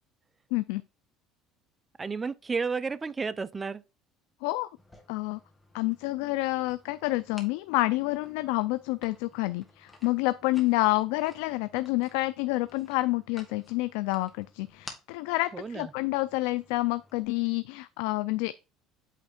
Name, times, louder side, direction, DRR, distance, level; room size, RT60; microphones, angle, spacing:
voice 1, 0.5-0.8 4.4-4.7 5.1-5.4 5.7-18.5, left 20 dB, 85° left, 0.3 m, -28 dB
voice 2, 2.0-3.8 15.5-15.9, right 4 dB, 20° right, 0.4 m, -32 dB
sound 1, 4.8-17.2, left 2 dB, 10° left, 1.5 m, -54 dB
8.3 x 3.4 x 4.2 m
cardioid pair, 125°, 0 cm